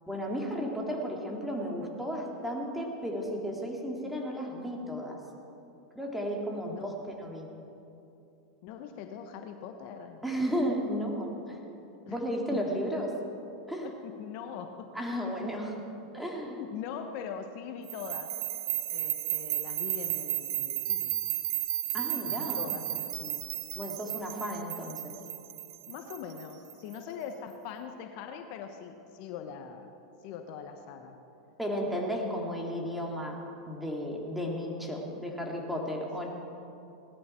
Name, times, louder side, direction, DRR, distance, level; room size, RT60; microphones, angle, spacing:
voice 1, 0.1-5.2 5.9-7.5 10.2-11.6 12.1-13.1 13.7-13.9 14.9-15.8 16.1-16.6 21.9-22.7 23.8-25.1 31.6-36.3, equal, 5° right, -1 dB, 2.6 m, -34 dB
voice 2, 8.6-10.2 12.0-12.2 12.5-13.3 13.8-15.1 16.6-18.3 18.9-21.2 22.2-23.5 25.9-29.9 30.2-31.2, left 7 dB, 55° left, 6 dB, 1.1 m, -42 dB
sound 1, 17.9-26.9, right 13 dB, 65° right, 1.0 m, -33 dB
18.5 x 13.0 x 4.5 m, 2.8 s
hypercardioid pair, 105°, 3 cm